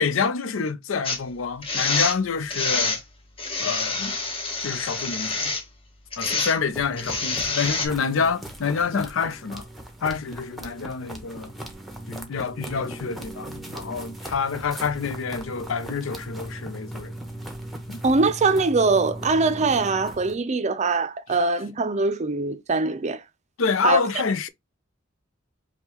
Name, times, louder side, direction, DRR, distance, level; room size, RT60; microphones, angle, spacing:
voice 1, 0.0-3.0 3.6-4.1 4.6-5.4 6.2-9.7 10.0-11.5 12.1-17.1 17.9-18.0 23.6-24.5, left 5 dB, 85° left, 0.5 m, -27 dB
sound 1, 1.0-1.2 1.6-2.2 2.5-3.0 3.4-5.6 6.1-6.5 7.0-7.9, left 3 dB, 30° left, 1.0 m, -27 dB
sound 2, 6.7-20.4, right 1 dB, ahead, 0.9 m, -38 dB
voice 2, 18.0-23.2 23.8-24.0, right 3 dB, 35° right, 0.5 m, -22 dB
5.4 x 2.3 x 2.9 m
head